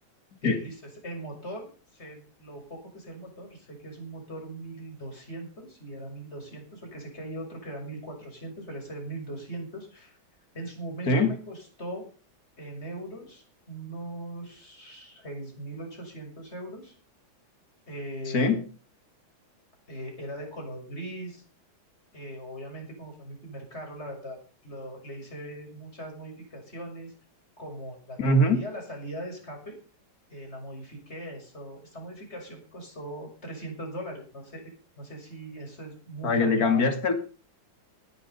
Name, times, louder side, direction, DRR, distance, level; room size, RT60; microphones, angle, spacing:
voice 1, 0.4-0.8 1.0-10.2 10.5-12.0 12.6-17.0 17.9-18.6 19.9-21.4 22.1-27.1 27.6-29.8 30.3-34.6 35.0-36.8, right 1 dB, 30° left, 2 dB, 7.1 m, -40 dB
voice 2, 18.3-18.6 28.2-28.6 36.2-37.1, left 2 dB, 50° left, 6 dB, 2.9 m, -22 dB
18.0 x 11.0 x 5.7 m, 0.37 s
omnidirectional pair, 2.2 m